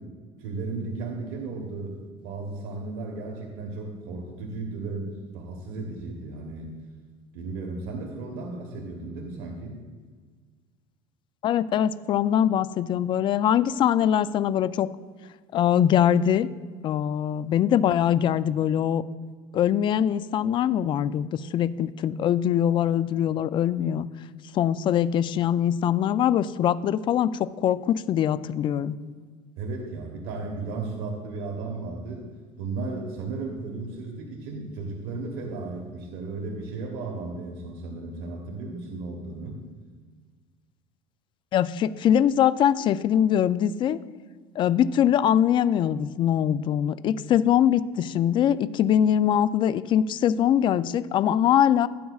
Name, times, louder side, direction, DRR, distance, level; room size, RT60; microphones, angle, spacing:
voice 1, 0.0-6.7 7.3-9.8 29.6-32.3 32.6-39.6, right 3 dB, 80° right, 0 dB, 1.2 m, -35 dB
voice 2, 11.4-14.9 15.5-16.5 16.8-19.0 19.5-24.1 24.5-28.9 41.5-44.0 44.6-51.9, left 10 dB, 35° left, 15 dB, 0.3 m, -22 dB
15.5 x 8.2 x 2.4 m, 1.5 s
cardioid pair, 130°, 13 cm